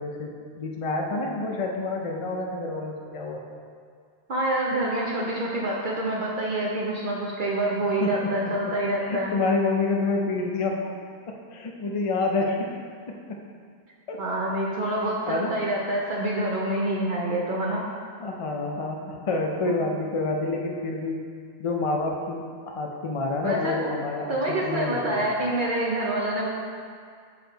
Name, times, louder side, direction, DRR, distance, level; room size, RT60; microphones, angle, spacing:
voice 1, 0.0-3.4 8.0-8.3 9.0-10.9 11.3-12.7 13.1-13.4 14.1-14.2 15.3-15.6 18.2-21.2 21.6-25.3, left 3 dB, 50° left, 1 dB, 0.4 m, -28 dB
voice 2, 4.3-9.3 14.2-17.8 19.6-19.7 23.4-23.8 24.3-26.5, right 1 dB, 55° right, -3 dB, 0.8 m, -27 dB
6.7 x 4.2 x 3.9 m, 2.1 s
omnidirectional pair, 1.1 m